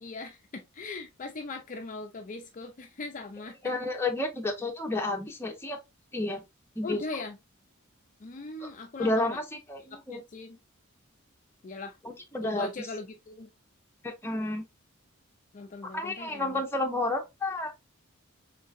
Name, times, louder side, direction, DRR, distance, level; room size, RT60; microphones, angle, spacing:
voice 1, 0.0-3.6 6.8-7.4 8.2-9.4 9.9-10.6 11.6-12.0 12.4-13.5 15.5-16.6, left 3 dB, 40° left, 0.5 m, -40 dB
voice 2, 3.6-5.8 6.1-6.4 6.8-7.0 8.6-8.7 9.0-10.2 12.0-12.9 14.0-14.6 15.9-17.7, left 2 dB, 10° left, 0.7 m, -31 dB
3.7 x 3.2 x 2.5 m
head